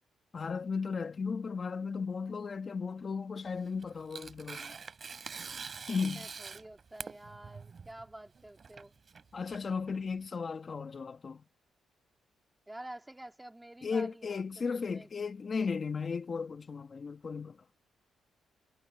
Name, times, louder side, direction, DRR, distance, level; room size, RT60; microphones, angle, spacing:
voice 1, 0.3-4.8 5.9-6.3 9.3-11.4 13.8-17.6, left 5 dB, 40° left, 1.3 m, -35 dB
Tearing, 3.5-10.2, right 5 dB, 40° right, 3.3 m, -45 dB
voice 2, 5.9-8.9 12.7-15.3, right 1 dB, 10° right, 3.3 m, -49 dB
cardioid pair, 90°, 0 cm